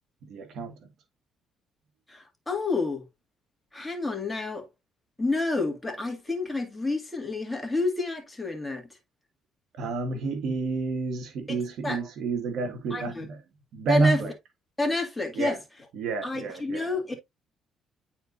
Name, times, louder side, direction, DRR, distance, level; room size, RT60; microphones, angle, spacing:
voice 1, 0.2-0.9 9.7-13.4 13.7-14.3 15.3-15.6 15.9-16.9, right 4 dB, 70° right, 1.7 m, -29 dB
voice 2, 2.1-3.1 3.7-4.6 5.2-8.9 11.5-11.6 11.8-12.0 12.9-13.3 13.9-14.2 14.8-15.6 16.2-17.1, left 2 dB, 10° left, 2.0 m, -29 dB
8.8 x 4.5 x 2.5 m
cardioid pair, 85°, 0 cm